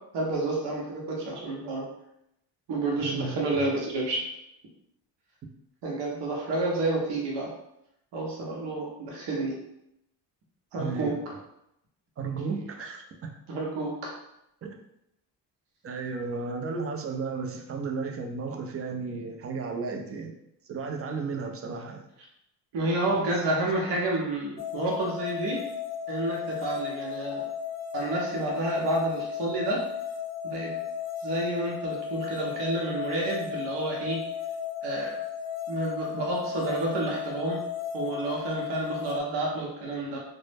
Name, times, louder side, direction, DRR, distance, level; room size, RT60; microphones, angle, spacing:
voice 1, 0.1-1.9 2.7-4.2 5.8-7.5 8.1-9.6 10.7-11.1 13.5-14.1 22.7-25.6 26.1-27.4 27.9-29.8 30.4-30.7 31.2-34.2 34.8-35.1 35.7-37.6 37.9-40.2, right 2 dB, 65° right, -2 dB, 0.8 m, -29 dB
voice 2, 3.0-3.4 10.8-11.2 12.2-13.3 14.6-14.7 15.8-20.3 20.6-22.0 23.0-23.4, right 4 dB, 30° right, 2 dB, 0.4 m, -34 dB
sound 1, 24.6-39.2, left 8 dB, 35° left, 0.5 m, -35 dB
2.0 x 2.0 x 3.2 m, 0.82 s
supercardioid pair, 65°, 45 cm